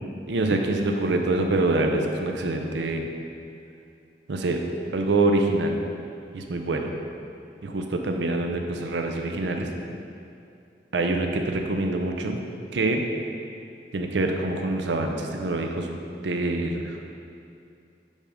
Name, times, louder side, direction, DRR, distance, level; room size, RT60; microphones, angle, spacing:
voice 1, 0.3-3.1 4.3-4.6 4.9-5.8 6.3-6.9 7.6-9.7 10.9-12.4 12.7-13.1 13.9-16.0 16.2-17.1, right 2 dB, 85° right, 3 dB, 0.6 m, -25 dB
5.3 x 4.9 x 5.1 m, 2.5 s
head